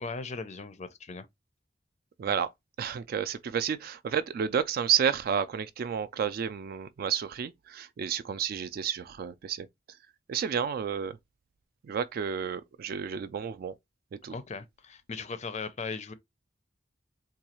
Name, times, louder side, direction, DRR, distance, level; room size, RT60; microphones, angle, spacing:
voice 1, 0.0-1.3 14.3-16.1, left 4 dB, 35° left, 0.5 m, -38 dB
voice 2, 2.2-2.5 2.8-9.7 10.3-11.2 11.8-13.7 14.1-14.4, right 7 dB, 50° right, 0.3 m, -31 dB
3.9 x 2.3 x 2.9 m
head